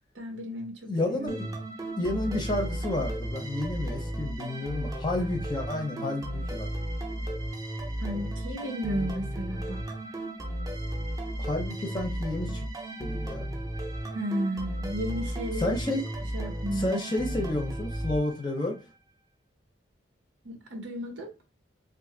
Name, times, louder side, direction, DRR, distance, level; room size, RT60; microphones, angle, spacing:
voice 1, 0.1-1.4 8.0-9.8 14.1-16.0 16.3-17.0 20.4-21.3, equal, 90° right, 0.9 m, -34 dB
voice 2, 0.9-1.5 2.0-6.7 11.4-12.7 13.0-13.5 15.6-16.0 16.7-18.8, left 2 dB, 25° left, 0.6 m, -30 dB
sound 1, 1.3-18.8, right 1 dB, 20° right, 0.6 m, -34 dB
2.5 x 2.5 x 3.8 m
head